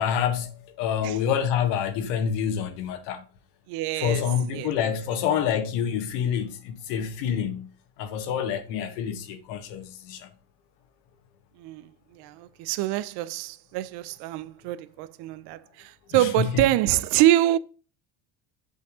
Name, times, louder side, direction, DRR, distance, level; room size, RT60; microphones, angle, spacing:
voice 1, 0.0-3.2 4.0-7.7 8.0-10.3 16.1-16.7, left 8 dB, 65° left, 1.7 m, -27 dB
voice 2, 3.7-4.2 4.5-4.7 11.6-17.6, right 14 dB, 65° right, 0.7 m, -25 dB
8.0 x 5.6 x 3.8 m
supercardioid pair, 120°, 44 cm